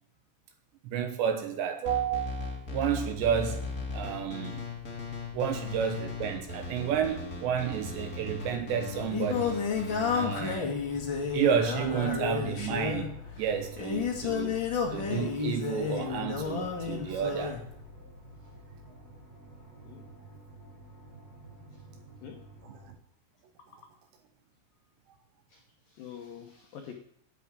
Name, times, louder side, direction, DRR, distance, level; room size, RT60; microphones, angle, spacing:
voice 1, 0.8-3.6 3.9-4.7 5.3-9.6 10.1-10.7 11.3-13.1 13.4-14.6 14.9-17.6 22.7-22.8, right 8 dB, 75° right, 6 dB, 2.8 m, -31 dB
sound 1, 1.8-10.6, left 4 dB, 25° left, 2.2 m, -38 dB
sound 2, 3.1-22.9, left 1 dB, 20° right, 5.6 m, -49 dB
Singing, 8.6-17.6, left 6 dB, 65° left, 1.1 m, -31 dB
voice 2, 23.6-23.9 25.5-26.9, left 8 dB, 85° left, 3 dB, 2.0 m, -47 dB
10.5 x 8.5 x 8.8 m, 0.70 s
omnidirectional pair, 5.9 m